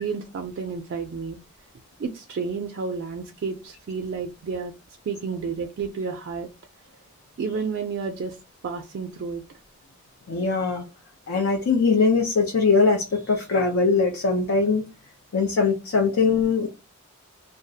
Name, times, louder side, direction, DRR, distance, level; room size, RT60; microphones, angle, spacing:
voice 1, 0.0-1.4 2.0-4.7 5.1-6.5 7.4-8.4 8.6-9.4, right 5 dB, 60° right, 0.3 m, -31 dB
voice 2, 10.3-10.8 11.3-14.8 15.3-16.7, left 4 dB, 75° left, 0.5 m, -21 dB
2.3 x 2.0 x 2.6 m
head